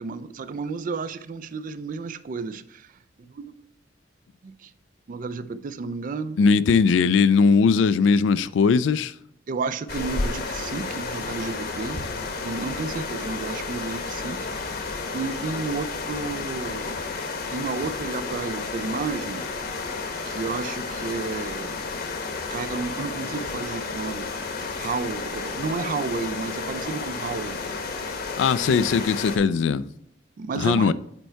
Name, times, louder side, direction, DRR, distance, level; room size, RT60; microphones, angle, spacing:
voice 1, 0.0-3.5 4.4-4.7 5.1-6.4 9.5-12.0 12.4-14.9 15.1-17.0 17.5-19.5 20.3-21.8 22.5-24.4 24.8-27.6 30.4-30.9, right 4 dB, 45° right, 0.3 m, -32 dB
voice 2, 6.4-9.1 28.4-29.9 30.5-30.9, left 5 dB, 75° left, 0.3 m, -19 dB
sound 1, 9.9-29.4, left 4 dB, 55° left, 0.9 m, -32 dB
7.9 x 4.5 x 4.4 m
head